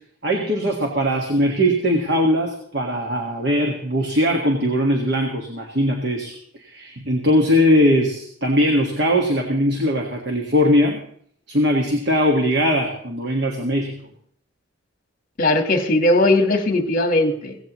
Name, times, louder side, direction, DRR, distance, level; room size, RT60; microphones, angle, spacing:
voice 1, 0.2-11.0 11.5-14.0, equal, 55° right, 2 dB, 1.7 m, -20 dB
voice 2, 15.4-17.6, left 2 dB, 45° left, 6 dB, 1.5 m, -18 dB
17.0 x 15.5 x 3.1 m, 0.63 s
head